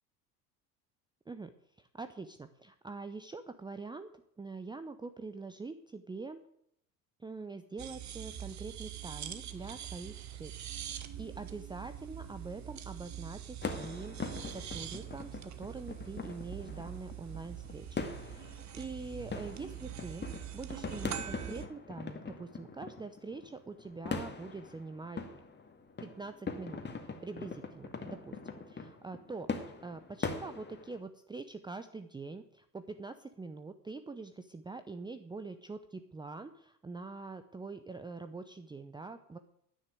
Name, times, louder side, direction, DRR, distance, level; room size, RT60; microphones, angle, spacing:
voice 1, 1.3-6.4 7.2-25.4 26.0-26.8 27.2-28.4 28.7-29.5 29.8-39.4, right 3 dB, 10° right, 9 dB, 0.7 m, -44 dB
sound 1, 7.8-21.7, right 10 dB, 35° right, 1.4 m, -44 dB
sound 2, 13.6-31.0, left 4 dB, 20° left, 2.2 m, -42 dB
10.0 x 9.8 x 9.2 m, 0.73 s
figure-of-eight pair, 70°, 49 cm